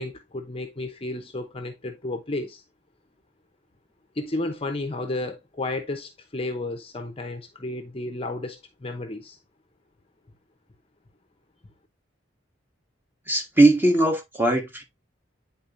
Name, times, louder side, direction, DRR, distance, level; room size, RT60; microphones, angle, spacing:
voice 1, 0.0-2.6 4.2-9.4, left 2 dB, 30° left, 0.8 m, -32 dB
voice 2, 13.3-14.8, right 2 dB, 10° right, 1.5 m, -20 dB
9.3 x 4.0 x 2.6 m
head